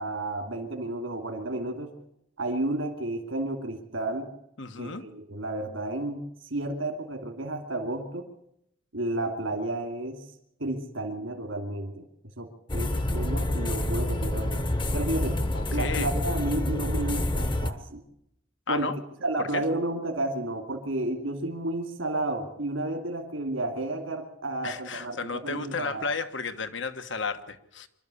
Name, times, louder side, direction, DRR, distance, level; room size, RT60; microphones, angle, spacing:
voice 1, 0.0-1.9 2.4-4.3 4.8-6.2 6.5-8.3 8.9-10.2 10.6-12.0 12.4-14.6 14.9-15.4 15.7-18.0 18.7-18.9 19.2-25.2 25.4-26.1, right 2 dB, 80° right, 3 dB, 2.8 m, -31 dB
voice 2, 4.6-5.0 15.5-16.1 18.7-19.0 19.4-19.6 24.6-27.9, left 4 dB, 65° left, 10 dB, 1.3 m, -33 dB
sound 1, 12.7-17.7, left 1 dB, 25° left, 1.0 m, -28 dB
25.5 x 12.5 x 8.5 m, 0.77 s
head